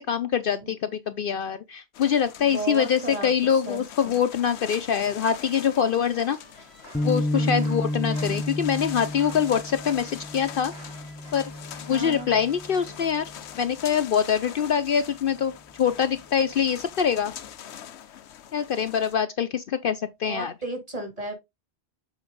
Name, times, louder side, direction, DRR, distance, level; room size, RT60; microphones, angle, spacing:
voice 1, 0.0-6.4 7.0-10.7 11.3-11.5 11.9-13.3 13.6-17.3 18.5-20.5, left 8 dB, 60° left, 0.7 m, -24 dB
sound 1, 1.9-19.2, left 10 dB, 80° left, 0.9 m, -43 dB
voice 2, 2.4-3.3 3.7-4.2 7.3-7.8 11.9-12.3 20.3-21.3, right 2 dB, 35° right, 2.5 m, -34 dB
sound 2, 4.9-13.1, right 3 dB, 70° right, 1.8 m, -51 dB
sound 3, 6.9-13.4, left 1 dB, 15° left, 0.3 m, -31 dB
7.3 x 4.7 x 3.8 m
omnidirectional pair, 1.1 m